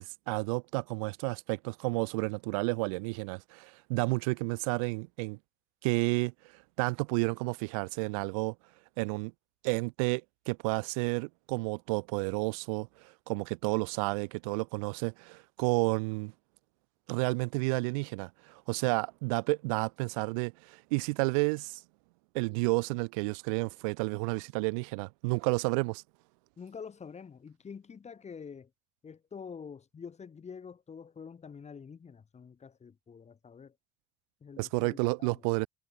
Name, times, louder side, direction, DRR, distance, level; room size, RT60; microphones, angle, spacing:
voice 1, 0.0-5.4 5.8-6.3 6.8-8.5 9.0-9.3 9.6-10.2 10.5-16.3 17.1-21.8 22.3-26.0 34.6-35.7, right 30 dB, 80° right, 1.6 m, -31 dB
voice 2, 26.6-28.7 29.0-33.7 34.4-35.4, left 6 dB, 40° left, 7.0 m, -47 dB
hypercardioid pair, 60°, 17 cm